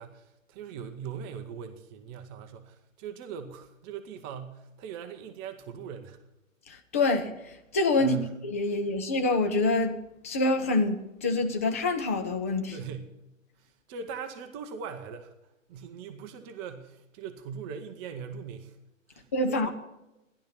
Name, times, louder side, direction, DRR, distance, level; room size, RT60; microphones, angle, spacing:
voice 1, 0.0-6.2 8.0-8.3 12.7-13.2 13.6-15.3 15.7-18.8 19.1-19.7, right 7 dB, 20° right, 0.7 m, -40 dB
voice 2, 6.7-8.2 8.4-10.0 10.2-12.8 19.3-19.7, left 2 dB, 10° left, 0.4 m, -26 dB
14.5 x 11.0 x 5.8 m
figure-of-eight pair, 120°, 39 cm